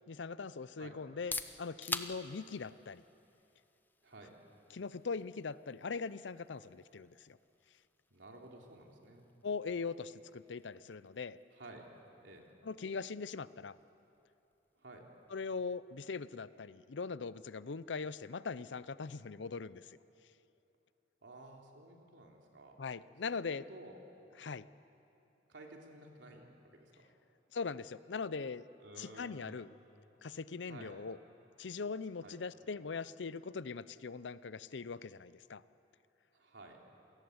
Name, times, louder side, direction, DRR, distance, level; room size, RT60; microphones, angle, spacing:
voice 1, 0.1-3.0 4.7-7.4 9.4-11.4 12.6-13.8 15.3-19.8 22.8-23.6 24.4-24.7 27.5-28.6 29.0-29.7 30.2-31.2 31.6-35.6, left 4 dB, 80° left, 16 dB, 0.6 m, -41 dB
sound 1, 1.0-16.7, left 3 dB, 10° left, 0.7 m, -50 dB
voice 2, 8.1-9.3 11.5-11.8 12.2-12.5 14.8-15.0 21.2-22.8 23.2-24.0 25.5-27.1 28.8-29.6 30.7-30.9 32.2-32.4 36.3-36.8, right 2 dB, 85° right, 0 dB, 3.3 m, -53 dB
27.5 x 18.5 x 8.0 m, 2.9 s
head